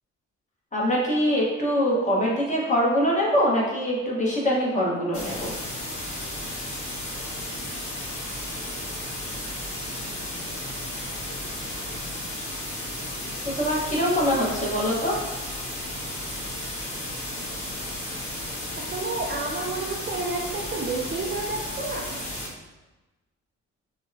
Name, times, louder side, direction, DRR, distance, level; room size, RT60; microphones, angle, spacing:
voice 1, 0.7-5.5 13.5-15.2, equal, 25° left, -5 dB, 1.1 m, -23 dB
sound 1, 5.1-22.5, left 1 dB, 45° left, 1.4 m, -34 dB
voice 2, 18.8-22.1, right 3 dB, 35° right, 0 dB, 0.4 m, -30 dB
4.5 x 2.2 x 2.6 m, 1.1 s
cardioid pair, 90°, 30 cm